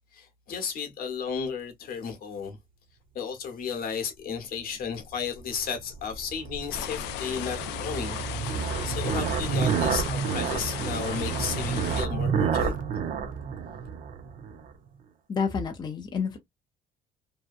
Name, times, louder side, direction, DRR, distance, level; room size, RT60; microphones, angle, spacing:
voice 1, 0.1-2.6 3.1-12.8, left 6 dB, 60° left, 0.9 m, -34 dB
sound 1, 5.1-14.7, right 6 dB, 55° right, 0.5 m, -30 dB
sound 2, 6.7-12.1, left 12 dB, 85° left, 0.4 m, -36 dB
voice 2, 15.3-16.4, left 5 dB, 25° left, 0.6 m, -29 dB
2.7 x 2.2 x 2.4 m
cardioid pair, 110°, 17 cm